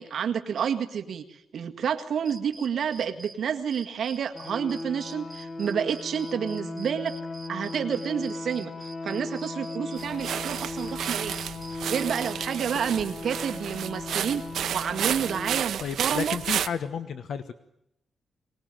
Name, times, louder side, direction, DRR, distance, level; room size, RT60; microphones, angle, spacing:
voice 1, 0.0-7.2 7.5-11.4 11.9-14.4 14.7-16.4, right 8 dB, 60° right, 6 dB, 1.8 m, -29 dB
sound 1, 2.2-3.4 3.7-12.3, right 2 dB, ahead, 2.5 m, -47 dB
sound 2, 4.3-15.6, left 3 dB, 30° left, 1.1 m, -37 dB
sound 3, 10.0-16.7, right 9 dB, 80° right, 0.9 m, -32 dB
voice 2, 15.8-17.5, left 7 dB, 60° left, 11 dB, 1.2 m, -32 dB
23.5 x 20.0 x 9.1 m, 0.78 s
wide cardioid pair, 160°, 0 cm